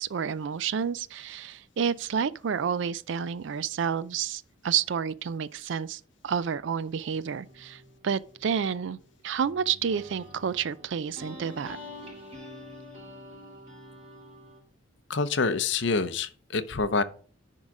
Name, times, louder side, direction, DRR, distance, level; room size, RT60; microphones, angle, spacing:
voice 1, 0.0-9.0 9.2-11.8, right 7 dB, 65° right, 0.4 m, -30 dB
sound 1, 7.4-14.6, left 1 dB, 30° right, 2.2 m, -47 dB
voice 2, 15.1-17.0, left 4 dB, 60° left, 0.6 m, -26 dB
10.5 x 3.8 x 4.8 m
head